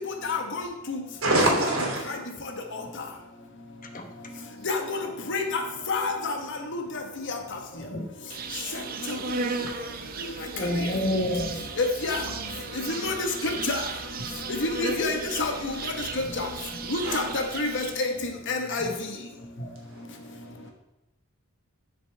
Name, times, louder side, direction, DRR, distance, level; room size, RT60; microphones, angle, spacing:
voice 1, 0.3-1.0 4.6-5.0 5.3-5.6 5.9-6.4 6.7-6.8 7.3-7.4 12.0-12.2 12.9-13.8 14.6-15.7 16.4-16.5 16.9-18.1 18.5-18.9, left 3 dB, 60° left, 4 dB, 1.2 m, -28 dB
voice 2, 1.2-2.1 10.0-10.4 17.0-17.2 19.7-20.7, right 1 dB, 75° right, -2 dB, 2.9 m, -27 dB
voice 3, 7.7-8.1 10.5-11.6 14.2-14.3 16.3-16.4 18.8-18.9 19.6-19.7, left 1 dB, 40° left, 4 dB, 1.1 m, -29 dB
Insect, 8.3-18.1, right 4 dB, 45° right, 0.7 m, -35 dB
11.0 x 6.8 x 3.4 m, 0.96 s
head